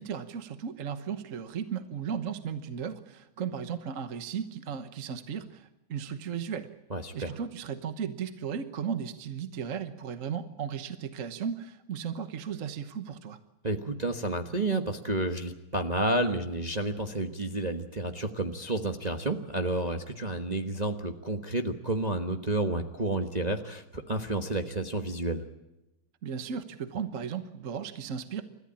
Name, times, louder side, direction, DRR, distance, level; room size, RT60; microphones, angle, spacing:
voice 1, 0.0-6.7 7.1-13.4 26.2-28.4, right 7 dB, 45° right, 10 dB, 1.3 m, -35 dB
voice 2, 6.9-7.3 13.6-25.4, right 2 dB, 25° right, 5 dB, 1.1 m, -30 dB
29.5 x 14.5 x 8.8 m, 0.96 s
omnidirectional pair, 2.3 m